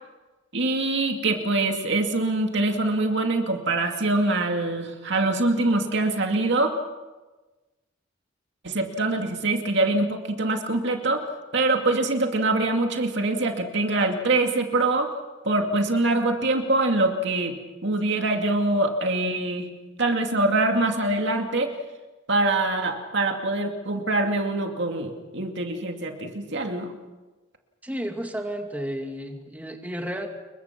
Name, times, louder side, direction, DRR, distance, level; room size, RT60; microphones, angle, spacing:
voice 1, 0.5-6.8 8.6-11.2 11.5-15.1 15.4-17.6 17.8-19.7 20.0-21.7 22.3-26.9, right 2 dB, 60° right, 3 dB, 2.5 m, -24 dB
voice 2, 27.8-30.3, equal, 10° right, 3 dB, 2.4 m, -32 dB
28.5 x 23.0 x 6.1 m, 1.2 s
head